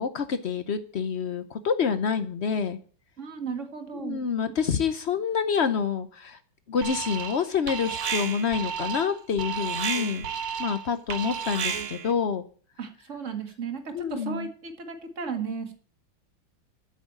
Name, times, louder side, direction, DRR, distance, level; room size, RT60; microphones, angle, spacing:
voice 1, 0.0-2.8 3.9-6.4 6.7-10.2 10.6-12.4 13.9-14.5, left 6 dB, 80° left, 11 dB, 0.6 m, -27 dB
voice 2, 3.2-4.2 12.8-15.7, right 5 dB, 35° right, 6 dB, 2.0 m, -35 dB
Alarm, 6.8-7.4 7.7-12.1, right 7 dB, 90° right, 2.2 m, -32 dB
13.5 x 6.5 x 8.6 m, 0.43 s
omnidirectional pair, 2.3 m